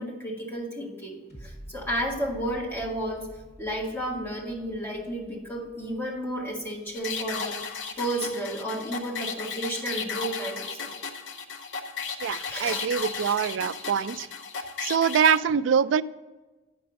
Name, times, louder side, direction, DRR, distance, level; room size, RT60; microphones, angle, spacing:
voice 1, 0.0-3.3 3.6-10.9 12.5-12.9 13.2-13.4, right 1 dB, 15° left, -3 dB, 1.6 m, -32 dB
sound 1, 1.3-8.3 8.8-8.9, equal, 35° left, 2.5 m, -49 dB
sound 2, 6.9-15.4, left 5 dB, 70° left, 0.7 m, -35 dB
voice 2, 12.2-14.3 14.8-16.0, right 7 dB, 75° right, 16 dB, 0.3 m, -24 dB
8.6 x 5.9 x 5.2 m, 1.2 s
head